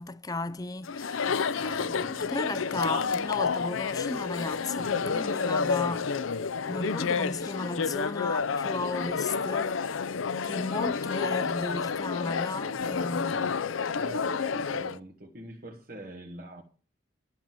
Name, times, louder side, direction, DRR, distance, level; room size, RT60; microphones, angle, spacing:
voice 1, 0.0-6.2 6.7-10.2 10.4-13.6 14.1-14.3, left 2 dB, 20° left, 0.5 m, -35 dB
Chatter, 0.8-15.0, left 5 dB, 80° left, 0.6 m, -30 dB
voice 2, 13.8-16.6, right 1 dB, 45° right, 1.4 m, -44 dB
12.0 x 5.8 x 7.5 m
head